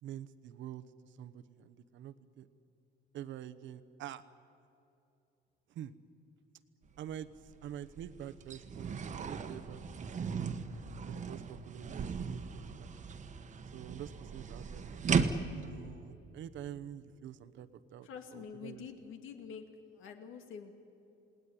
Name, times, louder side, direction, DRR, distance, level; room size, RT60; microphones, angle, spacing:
voice 1, 0.0-2.5 3.1-4.2 5.7-5.9 7.0-10.3 11.1-12.9 13.7-15.0 15.5-18.9, right 10 dB, 70° right, 11 dB, 1.1 m, -47 dB
sound 1, 6.8-7.0 7.4-15.7, right 5 dB, 35° right, 1.3 m, -37 dB
voice 2, 18.0-19.7 19.9-20.7, left 7 dB, 80° left, 5 dB, 2.7 m, -47 dB
28.5 x 18.5 x 9.8 m, 2.7 s
cardioid pair, 150°, 20 cm